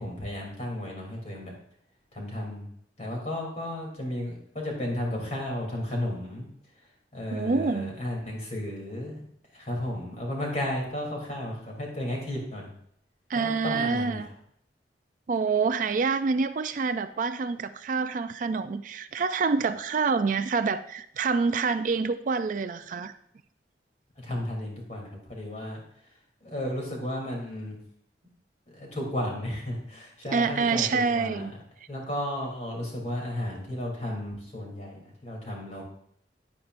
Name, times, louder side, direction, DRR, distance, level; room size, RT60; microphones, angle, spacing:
voice 1, 0.0-1.5 2.1-2.7 3.0-6.5 7.1-9.2 9.5-12.7 13.3-14.2 24.2-25.8 26.4-27.8 28.7-31.6 31.9-35.8, left 1 dB, 40° left, -1 dB, 3.2 m, -33 dB
voice 2, 7.3-7.9 13.3-14.3 15.3-23.1 30.3-31.5, right 4 dB, 50° right, 11 dB, 0.4 m, -27 dB
10.5 x 9.4 x 2.6 m, 0.68 s
head